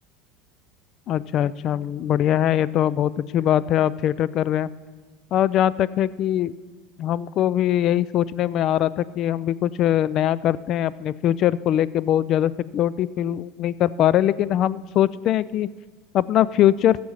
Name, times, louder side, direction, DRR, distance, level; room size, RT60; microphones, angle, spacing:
voice 1, 1.1-4.7 5.3-6.5 7.0-15.7 16.1-17.0, left 11 dB, 50° left, 19 dB, 0.4 m, -22 dB
14.5 x 7.7 x 5.6 m, 1.4 s
hypercardioid pair, 80°, 0 cm